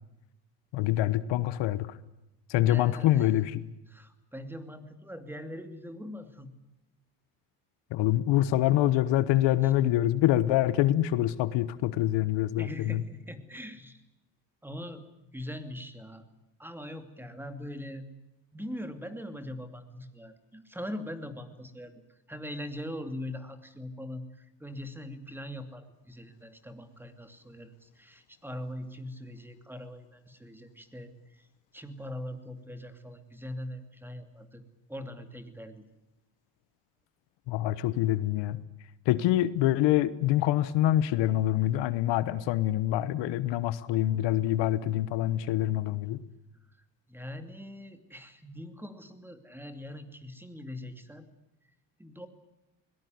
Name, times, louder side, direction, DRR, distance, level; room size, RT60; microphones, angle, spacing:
voice 1, 0.7-2.0 2.5-3.7 7.9-13.0 37.5-38.6 39.0-46.2, left 14 dB, 80° left, 1.2 m, -25 dB
voice 2, 2.6-3.3 3.9-6.5 9.6-9.7 12.6-14.0 14.6-16.3 16.6-18.1 18.5-21.9 22.3-31.5 31.7-34.6 34.9-35.8 47.1-51.3 52.0-52.3, left 1 dB, 5° right, 2.6 m, -42 dB
21.5 x 19.0 x 9.5 m
cardioid pair, 100°, 43 cm